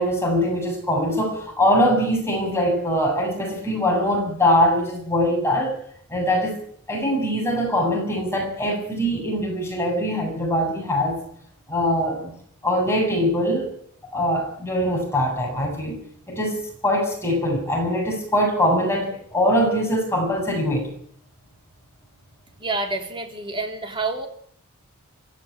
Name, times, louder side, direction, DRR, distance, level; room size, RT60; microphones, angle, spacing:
voice 1, 0.0-5.7 6.1-6.6 6.9-11.2 11.7-12.3 12.6-13.7 14.1-16.0 16.3-20.9, equal, 10° left, 0 dB, 8.0 m, -22 dB
voice 2, 22.6-24.3, right 3 dB, 20° right, 4 dB, 3.2 m, -28 dB
24.0 x 15.5 x 8.9 m, 0.63 s
head